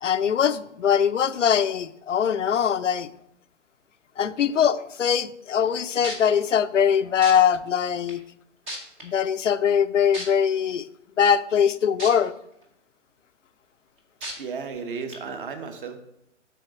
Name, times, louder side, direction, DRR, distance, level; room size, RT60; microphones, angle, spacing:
voice 1, 0.0-3.1 4.2-8.2 9.0-10.9 11.2-12.3, left 8 dB, 80° left, 12 dB, 0.6 m, -22 dB
sound 1, 5.7-5.8 6.0-6.3 7.2-7.3 8.1-8.2 8.7-9.0 10.1-10.2 12.0-12.1 12.6-12.7 14.2-14.3 15.1-15.2, equal, 10° right, 0.4 m, -33 dB
voice 2, 14.4-16.0, right 5 dB, 45° right, 7 dB, 1.1 m, -34 dB
6.8 x 4.0 x 6.1 m, 0.81 s
figure-of-eight pair, 135°, 36 cm